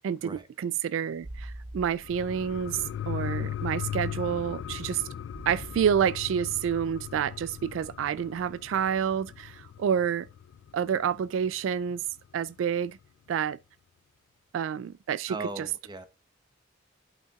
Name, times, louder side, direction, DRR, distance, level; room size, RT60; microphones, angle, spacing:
voice 1, 0.0-5.0 5.5-10.3 10.7-12.0 12.3-13.0 13.3-13.6 14.5-15.7, right 8 dB, 85° right, 0.3 m, -29 dB
sound 1, 1.2-9.6 9.9-10.0, right 1 dB, 50° right, 0.7 m, -48 dB
sound 2, 2.0-11.1 11.5-11.6, left 10 dB, 80° left, 0.3 m, -38 dB
voice 2, 15.3-16.1, right 3 dB, 20° right, 0.9 m, -37 dB
11.5 x 5.7 x 2.3 m
head